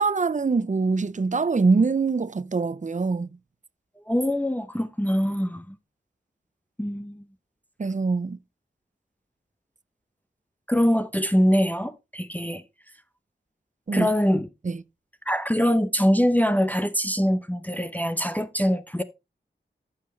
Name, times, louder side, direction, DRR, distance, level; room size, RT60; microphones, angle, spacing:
voice 1, 0.0-3.3 7.8-8.4 13.9-14.1 14.6-14.8, right 4 dB, 40° right, 0.6 m, -24 dB
voice 2, 4.1-5.8 6.8-7.2 10.7-12.6 13.9-14.5 15.3-19.0, equal, 10° left, 0.7 m, -23 dB
14.0 x 5.8 x 3.2 m
wide cardioid pair, 50°, 19 cm